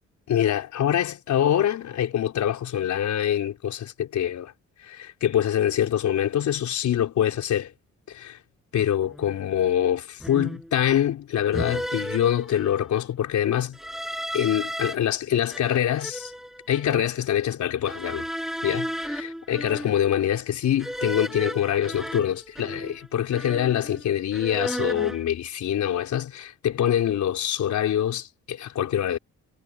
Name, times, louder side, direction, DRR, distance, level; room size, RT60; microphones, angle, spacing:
voice 1, 0.3-4.5 4.8-7.7 8.1-8.4 8.7-13.8 14.3-16.3 16.7-18.3 18.6-29.2, left 10 dB, 70° left, 4.4 m, -25 dB
sound 1, 9.1-9.4 10.2-10.8 11.5-12.9 13.7-14.9 15.5-17.1 17.8-20.2 20.8-23.1 23.3-24.0 24.3-25.2, equal, ahead, 7.4 m, -34 dB
cardioid pair, 90°, 30 cm